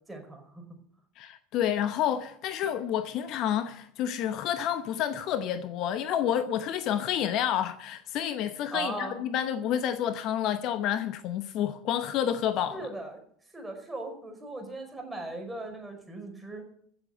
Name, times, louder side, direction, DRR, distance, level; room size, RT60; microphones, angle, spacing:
voice 1, 0.1-0.6 8.7-9.2 12.7-13.2 13.5-16.7, right 2 dB, 10° right, 5.0 m, -38 dB
voice 2, 1.2-12.8, left 10 dB, 50° left, 0.9 m, -29 dB
15.5 x 7.3 x 8.0 m
figure-of-eight pair, 75°, 0 cm